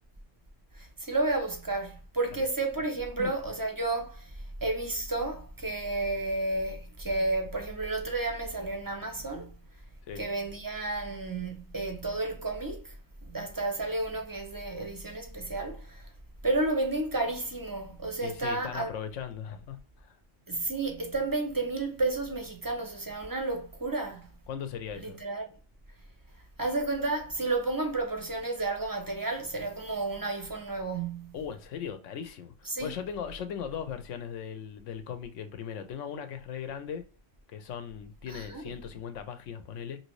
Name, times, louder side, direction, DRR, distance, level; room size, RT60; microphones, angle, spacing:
voice 1, 0.8-4.3 4.6-9.5 10.2-12.9 13.2-16.1 16.4-18.9 20.5-24.3 25.0-25.5 26.6-31.3 32.7-32.9 38.3-38.6, right 2 dB, 25° right, 0.5 m, -31 dB
voice 2, 18.2-20.2 24.5-25.2 31.3-37.0 37.5-40.0, left 7 dB, 80° left, 0.9 m, -38 dB
3.0 x 2.7 x 3.0 m
omnidirectional pair, 1.3 m